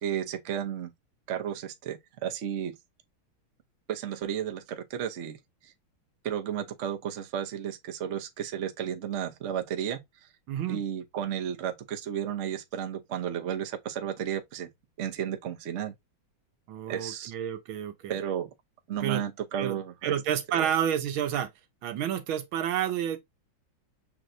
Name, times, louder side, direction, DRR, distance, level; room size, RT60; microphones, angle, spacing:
voice 1, 0.0-0.9 1.3-2.8 3.9-5.4 5.6-5.7 6.2-10.0 10.7-14.7 15.0-15.9 16.9-17.3 18.1-18.5 18.9-20.1 20.5-20.7, right 9 dB, 50° right, 0.9 m, -33 dB
voice 2, 10.5-10.8 16.7-18.2 19.0-19.2 19.6-21.5 21.8-23.2, right 9 dB, 80° right, 1.6 m, -30 dB
6.6 x 3.1 x 2.6 m
omnidirectional pair, 2.2 m